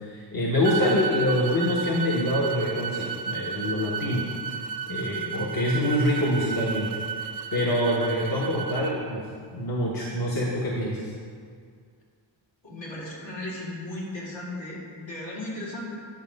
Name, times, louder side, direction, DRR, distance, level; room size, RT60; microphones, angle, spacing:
voice 1, 0.0-4.3 4.9-6.9 7.2-9.2 9.5-11.0, left 1 dB, 45° left, -4 dB, 1.3 m, -25 dB
sound 1, 0.6-8.9, right 6 dB, 55° right, 0.5 m, -33 dB
voice 2, 12.6-15.9, left 1 dB, 70° left, -5 dB, 2.6 m, -36 dB
10.5 x 6.3 x 5.3 m, 2.1 s
wide cardioid pair, 150°, 48 cm